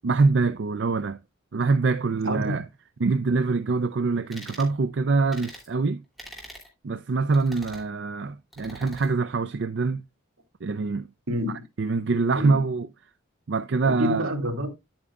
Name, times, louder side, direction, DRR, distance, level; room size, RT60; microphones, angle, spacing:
voice 1, 0.0-1.2 1.5-2.6 3.0-6.0 6.8-10.0 10.6-11.1 11.8-12.9 13.5-14.3, right 4 dB, 55° right, 0.4 m, -24 dB
voice 2, 2.2-2.6 11.3-11.6 12.3-12.6 13.8-14.7, equal, 80° right, 2.9 m, -28 dB
sound 1, 4.3-4.7 5.3-5.7 6.2-6.7 7.3-7.9 8.5-9.1, equal, ahead, 2.8 m, -44 dB
9.8 x 8.7 x 2.3 m
head